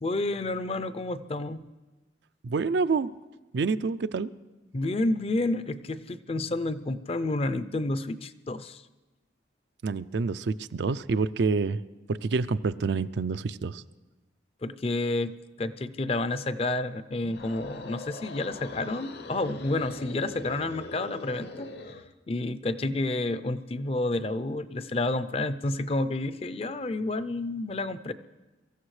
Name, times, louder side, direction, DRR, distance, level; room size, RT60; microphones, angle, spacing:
voice 1, 0.0-1.7 4.7-8.8 14.6-21.7 22.3-28.1, left 2 dB, 30° left, 13 dB, 0.5 m, -30 dB
voice 2, 2.4-3.1 3.5-4.3 9.8-11.8 12.1-13.8, right 4 dB, 70° right, 13 dB, 0.4 m, -27 dB
sound 1, 17.2-22.1, left 3 dB, 65° left, 0.9 m, -42 dB
23.5 x 14.5 x 3.2 m, 1.1 s
head